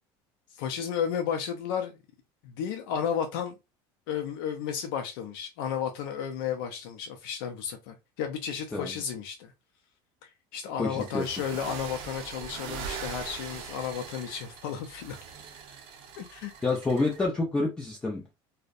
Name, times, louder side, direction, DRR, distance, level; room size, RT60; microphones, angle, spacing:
voice 1, 0.5-2.0 2.4-3.6 4.1-9.5 10.2-15.2 16.2-16.5, left 8 dB, 80° left, 0.4 m, -33 dB
voice 2, 8.7-9.0 10.8-11.2 16.6-18.3, left 3 dB, 10° left, 0.3 m, -28 dB
sound 1, 11.0-17.3, right 6 dB, 50° right, 0.6 m, -41 dB
2.6 x 2.0 x 2.4 m
cardioid pair, 165°, 11 cm